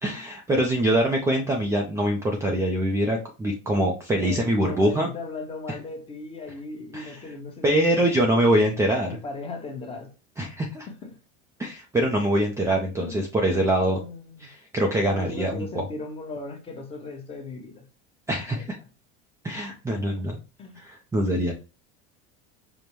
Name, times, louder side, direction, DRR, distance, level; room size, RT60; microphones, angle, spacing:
voice 1, 0.0-5.1 6.9-7.3 7.6-9.2 10.4-10.9 11.6-14.0 14.4-15.8 18.3-18.7 19.4-20.4 20.8-21.5, right 1 dB, 10° right, 0.4 m, -24 dB
voice 2, 4.2-8.5 9.0-10.1 11.0-11.1 13.0-13.2 14.0-14.5 15.1-17.8 18.5-18.6 20.6-20.8, left 3 dB, 20° left, 0.9 m, -37 dB
5.1 x 2.1 x 3.0 m
cardioid pair, 145°, 29 cm